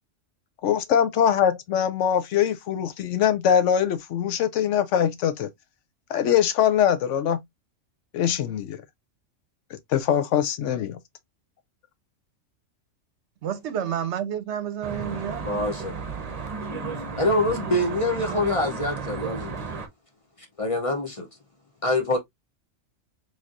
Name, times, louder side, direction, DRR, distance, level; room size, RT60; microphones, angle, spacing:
voice 1, 0.6-5.5 6.1-7.4 8.1-8.8 9.9-11.0, left 9 dB, 75° left, 0.9 m, -22 dB
voice 2, 13.4-15.5, right 9 dB, 70° right, 0.9 m, -30 dB
Traffic noise roadway noise, 14.8-19.9, right 4 dB, 35° right, 0.7 m, -33 dB
voice 3, 15.4-16.0 17.2-19.6 20.6-21.3 21.8-22.2, left 1 dB, 35° left, 0.6 m, -25 dB
4.2 x 3.1 x 2.4 m
omnidirectional pair, 1.3 m